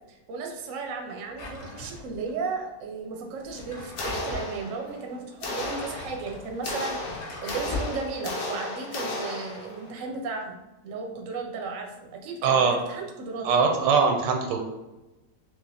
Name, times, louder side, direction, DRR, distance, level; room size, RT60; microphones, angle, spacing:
voice 1, 0.1-10.6 10.8-13.5, right 4 dB, 60° right, 1 dB, 0.9 m, -35 dB
Drawer open or close, 1.3-2.3 3.4-4.5 5.3-8.0, left 2 dB, 50° left, 0.9 m, -38 dB
sound 1, 4.0-5.0 5.4-9.9, left 2 dB, 85° left, 1.4 m, -34 dB
voice 2, 12.4-12.7 13.4-14.6, right 5 dB, 85° right, 3 dB, 1.3 m, -21 dB
5.9 x 2.4 x 2.7 m, 1.0 s
omnidirectional pair, 1.9 m